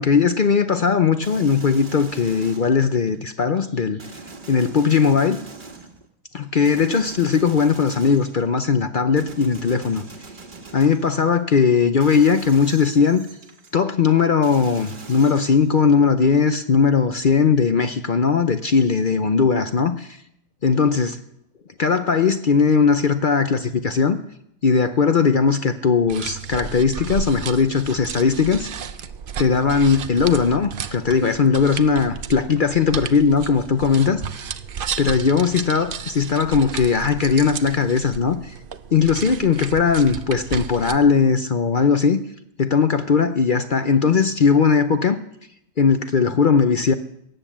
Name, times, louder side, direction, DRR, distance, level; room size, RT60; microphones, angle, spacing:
voice 1, 0.0-4.0 4.5-5.4 6.3-10.0 10.7-13.3 13.7-20.2 20.6-21.2 21.8-24.2 24.6-28.7 29.4-34.2 35.0-38.5 38.9-42.2 42.6-45.2 45.8-46.9, left 5 dB, 60° left, 9 dB, 0.5 m, -19 dB
sound 1, 1.2-3.2 4.0-6.1 6.6-8.6 9.2-11.4 12.0-13.7 14.4-16.1, right 3 dB, 30° right, 1.6 m, -41 dB
sound 2, 26.1-41.0, right 7 dB, 60° right, 0.5 m, -33 dB
18.0 x 8.9 x 7.4 m, 0.74 s
omnidirectional pair, 1.8 m